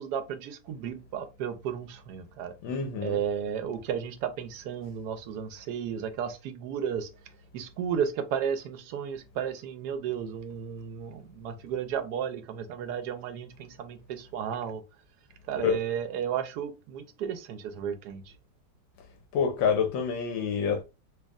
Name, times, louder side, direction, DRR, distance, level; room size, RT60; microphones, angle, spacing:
voice 1, 0.0-2.5 3.0-7.1 7.5-14.8 15.5-18.3, right 8 dB, 70° right, 1.0 m, -33 dB
voice 2, 2.6-3.2 15.6-15.7 19.3-20.8, left 6 dB, 80° left, 1.4 m, -27 dB
4.5 x 2.6 x 2.3 m
omnidirectional pair, 2.1 m